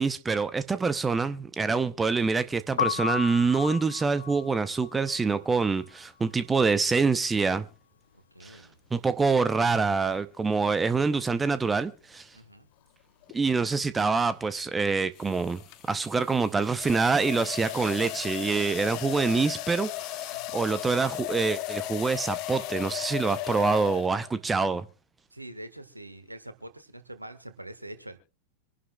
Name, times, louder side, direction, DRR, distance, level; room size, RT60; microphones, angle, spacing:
voice 1, 0.0-7.7 8.4-8.6 8.9-12.3 13.3-15.6 15.9-24.9, right 4 dB, 15° right, 0.7 m, -26 dB
Piano, 2.6-8.6 8.8-10.4 10.7-17.1, left 8 dB, 65° left, 0.5 m, -37 dB
voice 2, 8.3-8.8 12.3-12.7 20.3-20.6 25.3-28.2, right 1 dB, 85° right, 1.6 m, -44 dB
sound 1, 13.2-13.5 15.2-24.4, left 16 dB, 40° left, 0.9 m, -36 dB
25.5 x 11.0 x 2.3 m
figure-of-eight pair, 90°, 0 cm